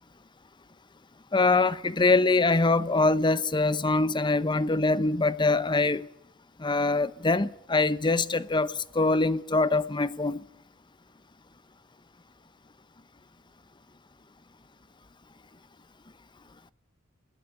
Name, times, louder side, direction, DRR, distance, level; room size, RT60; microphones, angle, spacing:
voice 1, 1.3-6.1 6.6-10.4, left 3 dB, 25° left, 0.8 m, -24 dB
21.5 x 16.0 x 9.4 m
head